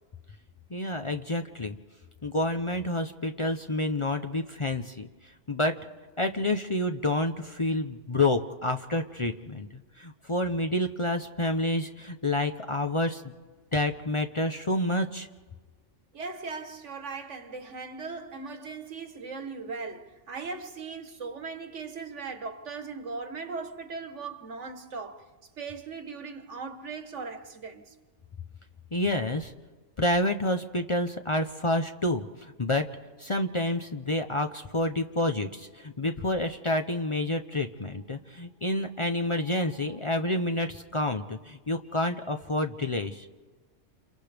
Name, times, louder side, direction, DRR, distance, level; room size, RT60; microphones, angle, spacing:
voice 1, 0.7-1.8 2.2-5.1 5.5-5.8 6.2-13.3 13.7-15.3 28.9-29.5 30.0-32.9 33.2-43.3, left 1 dB, 30° left, 0.7 m, -28 dB
voice 2, 16.1-25.3 25.6-27.9, right 4 dB, 80° right, 1.6 m, -38 dB
29.0 x 28.5 x 3.4 m
omnidirectional pair, 1.2 m